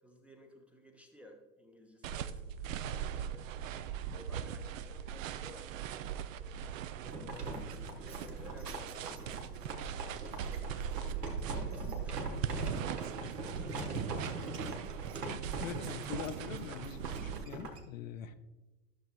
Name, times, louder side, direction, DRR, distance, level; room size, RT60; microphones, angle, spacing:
voice 1, 0.0-3.5 4.1-7.6 8.2-12.3 12.7-14.7, equal, 5° right, 1 dB, 0.6 m, -56 dB
sound 1, 2.0-17.4, right 8 dB, 55° right, 0.5 m, -40 dB
sound 2, 7.0-17.8, right 2 dB, 80° right, 1.3 m, -42 dB
voice 2, 15.6-18.3, left 9 dB, 60° left, 10 dB, 0.6 m, -43 dB
12.5 x 6.4 x 2.3 m, 1.1 s
figure-of-eight pair, 85°, 47 cm